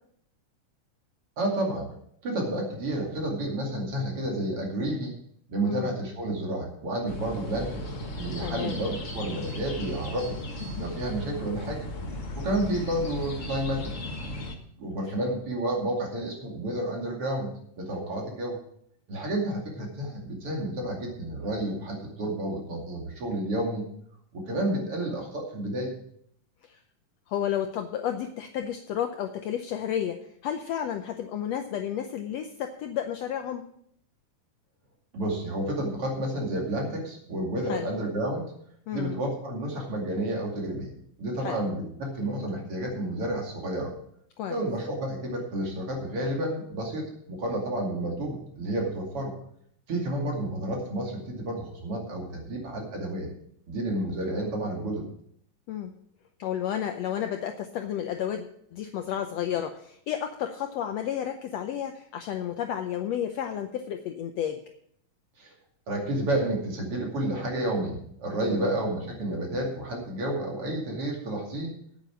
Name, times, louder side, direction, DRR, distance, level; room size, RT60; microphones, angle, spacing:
voice 1, 1.4-1.9 2.2-5.1 5.5-7.8 8.1-10.4 10.8-11.8 12.4-13.9 14.8-17.5 17.8-18.6 19.1-23.8 24.3-25.9 35.1-38.5 38.9-40.9 41.2-43.9 44.5-49.3 49.9-53.3 53.7-55.0 65.4-65.5 65.9-71.7, right 1 dB, 45° right, 0 dB, 3.2 m, -30 dB
voice 2, 5.6-5.9 8.4-8.8 26.6-26.8 27.3-33.6 37.7-37.9 38.9-39.2 41.4-41.6 44.4-44.6 55.7-55.9 56.4-64.6 68.4-68.6, left 9 dB, 90° left, 6 dB, 1.4 m, -32 dB
sound 1, 7.1-14.5, left 1 dB, 65° left, 0.7 m, -36 dB
9.0 x 8.9 x 7.3 m, 0.68 s
omnidirectional pair, 3.8 m